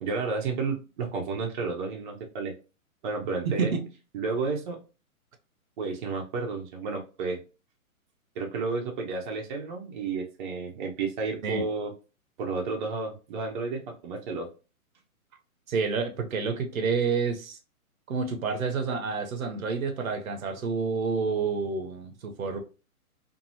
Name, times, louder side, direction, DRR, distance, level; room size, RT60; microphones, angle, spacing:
voice 1, 0.0-2.5 3.0-3.7 4.1-4.8 5.8-7.4 8.4-11.9 12.4-14.5, right 4 dB, 35° right, 0.6 m, -31 dB
voice 2, 3.4-3.9 11.4-11.6 15.7-17.6 18.1-22.6, right 5 dB, 70° right, 0.8 m, -29 dB
2.7 x 2.6 x 2.7 m
hypercardioid pair, 130°, 43 cm